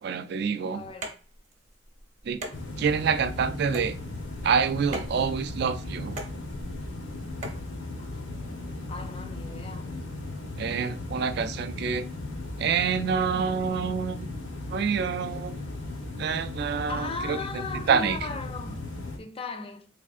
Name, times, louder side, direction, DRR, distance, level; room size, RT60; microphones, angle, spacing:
voice 1, 0.0-0.8 2.2-2.4 2.8-4.0 4.4-6.2 10.6-12.1 12.6-14.3 14.7-15.6 16.2-17.4 17.9-18.2, right 6 dB, 60° right, 0.3 m, -27 dB
voice 2, 0.7-1.1 8.0-10.1 16.9-18.8 19.2-19.9, left 3 dB, 30° left, 0.4 m, -38 dB
sound 1, 1.0-7.7, right 2 dB, 40° right, 0.8 m, -42 dB
sound 2, 2.5-19.2, left 2 dB, 90° left, 0.9 m, -37 dB
3.4 x 3.3 x 2.4 m
head